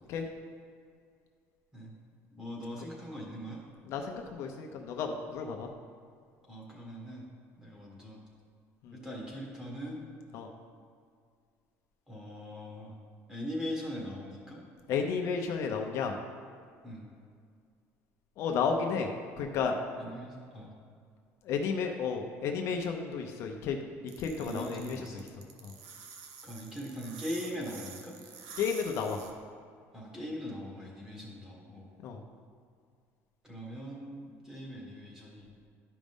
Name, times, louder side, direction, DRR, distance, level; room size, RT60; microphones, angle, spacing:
voice 1, 2.4-3.6 6.5-7.2 7.6-8.2 8.9-10.0 12.1-12.9 13.3-14.6 16.8-17.1 20.0-20.7 24.4-25.2 26.4-28.1 29.9-31.8 33.4-35.7, equal, 10° right, -3 dB, 1.7 m, -41 dB
voice 2, 3.8-5.7 8.8-9.0 10.3-10.5 14.9-16.2 18.4-19.1 19.4-19.7 21.4-23.8 24.2-25.2 25.6-25.7 28.6-29.2 32.0-32.2, left 6 dB, 55° left, 3 dB, 0.6 m, -32 dB
sound 1, 24.1-29.3, right 5 dB, 80° right, 0.9 m, -48 dB
12.0 x 5.1 x 3.6 m, 2.2 s
cardioid pair, 160°, 6 cm